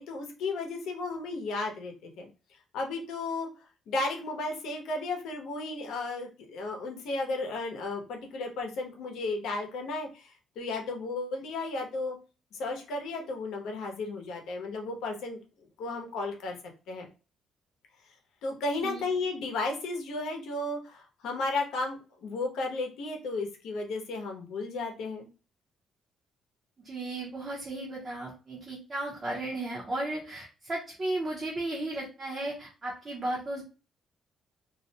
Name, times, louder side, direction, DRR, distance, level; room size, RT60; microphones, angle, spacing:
voice 1, 0.0-2.3 2.7-3.5 3.9-12.2 12.5-15.4 15.8-16.6 16.9-17.1 18.4-25.3, left 3 dB, 80° left, 2 dB, 0.7 m, -34 dB
voice 2, 26.8-33.6, right 2 dB, 25° right, -4 dB, 0.6 m, -35 dB
2.4 x 2.1 x 2.7 m, 0.32 s
cardioid pair, 170°, 0 cm